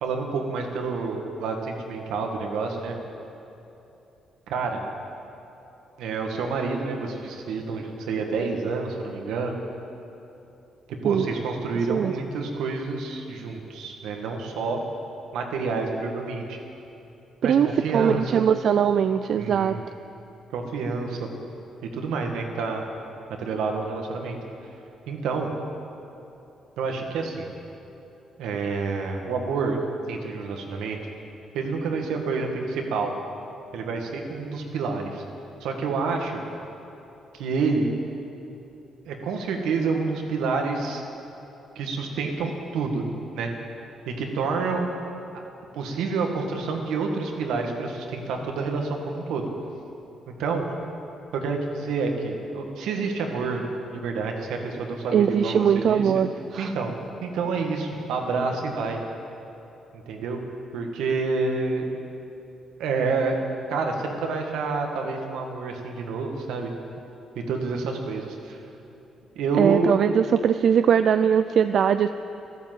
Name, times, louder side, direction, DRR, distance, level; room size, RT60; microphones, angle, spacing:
voice 1, 0.0-2.9 4.5-4.8 6.0-9.5 11.0-14.8 15.3-16.6 17.4-18.4 19.4-19.8 20.5-21.3 21.9-22.8 23.4-24.4 25.1-25.5 26.8-27.5 28.4-29.8 30.1-31.0 31.5-33.1 33.7-35.2 35.6-36.4 37.3-37.9 39.1-41.0 41.8-43.1 43.3-43.5 44.1-44.9 45.3-45.4 45.7-49.5 50.3-50.6 51.3-53.6 53.9-56.0 56.6-56.9 57.2-59.0 59.9-60.4 60.7-61.8 62.8-63.4 63.7-66.7 67.4-68.6 69.4-69.9, right 4 dB, 85° right, 3 dB, 1.8 m, -28 dB
voice 2, 17.4-19.8 55.1-56.7 69.6-72.1, right 8 dB, 65° right, 11 dB, 0.4 m, -21 dB
13.0 x 12.0 x 7.8 m, 2.9 s
cardioid pair, 90°, 0 cm